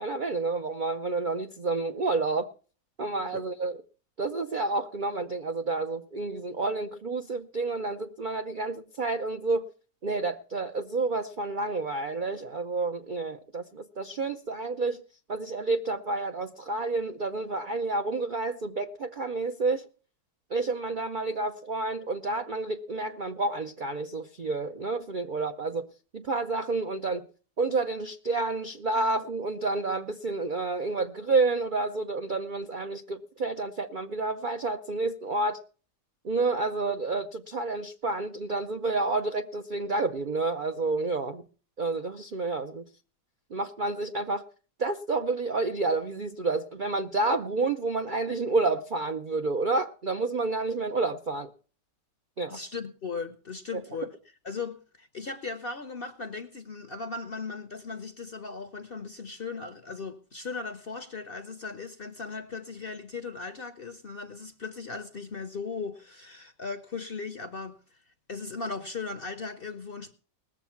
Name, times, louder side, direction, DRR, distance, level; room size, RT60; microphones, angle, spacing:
voice 1, 0.0-2.5 3.0-3.8 4.2-9.7 10.0-15.0 15.3-19.8 20.5-25.9 26.1-27.3 27.6-35.6 36.2-41.4 41.8-42.8 43.5-44.5 44.8-51.5 52.4-52.6 53.7-53.8, right 3 dB, 75° right, 0.4 m, -29 dB
voice 2, 52.5-54.1 54.4-68.0 68.3-70.1, left 4 dB, 50° left, 0.7 m, -37 dB
19.5 x 7.2 x 5.7 m
omnidirectional pair, 1.9 m